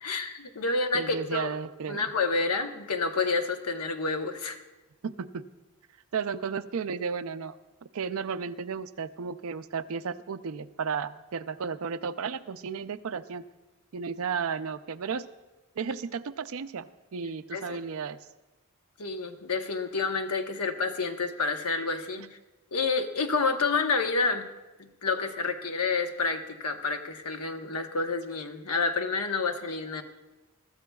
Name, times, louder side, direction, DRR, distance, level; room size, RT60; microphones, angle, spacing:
voice 1, 0.0-1.5 1.9-4.6 17.5-17.8 19.0-22.4 22.7-24.5 24.8-30.0, left 4 dB, 80° left, 6 dB, 1.0 m, -29 dB
voice 2, 0.9-2.1 5.0-5.4 6.1-7.6 7.9-13.4 13.9-15.3 15.7-18.2, right 6 dB, 65° right, 12 dB, 0.5 m, -33 dB
22.5 x 13.5 x 2.3 m, 1.1 s
head